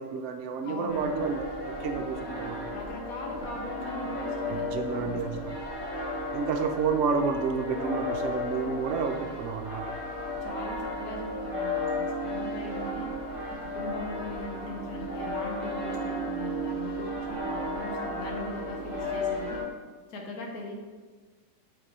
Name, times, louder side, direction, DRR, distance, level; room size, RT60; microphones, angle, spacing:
voice 1, 0.0-1.4 1.8-2.6 4.5-5.6 6.3-9.9, right 5 dB, 85° right, 4 dB, 0.6 m, -30 dB
voice 2, 0.6-1.1 2.7-5.5 10.4-13.1 13.5-19.6 20.1-20.7, left 2 dB, 60° left, 1 dB, 1.3 m, -40 dB
sound 1, 0.9-19.6, left 1 dB, 25° left, 1.6 m, -34 dB
7.5 x 4.4 x 3.3 m, 1.4 s
omnidirectional pair, 1.9 m